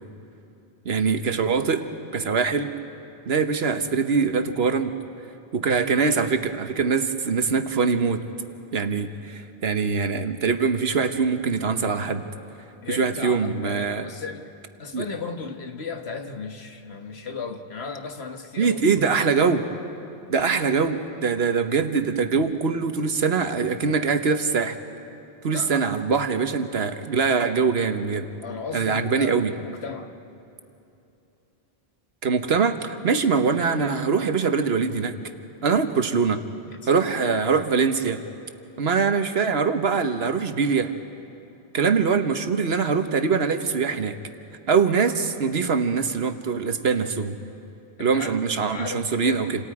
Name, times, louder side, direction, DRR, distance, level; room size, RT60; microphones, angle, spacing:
voice 1, 0.8-1.8 2.1-2.7 3.3-4.9 5.5-8.2 8.7-12.2 12.9-14.1 14.9-15.1 18.6-19.6 20.3-24.8 25.4-28.3 28.7-29.5 32.2-35.1 35.6-36.4 36.9-38.2 38.8-40.9 41.7-44.2 44.7-47.4 48.0-49.5, right 5 dB, 70° right, 8 dB, 1.4 m, -23 dB
voice 2, 12.8-14.5 14.8-19.3 25.5-25.9 28.4-30.1 36.7-36.9 37.2-37.4 48.0-48.4 48.7-49.6, left 4 dB, 80° left, 5 dB, 1.6 m, -35 dB
28.5 x 27.5 x 4.9 m, 2.9 s
omnidirectional pair, 1.1 m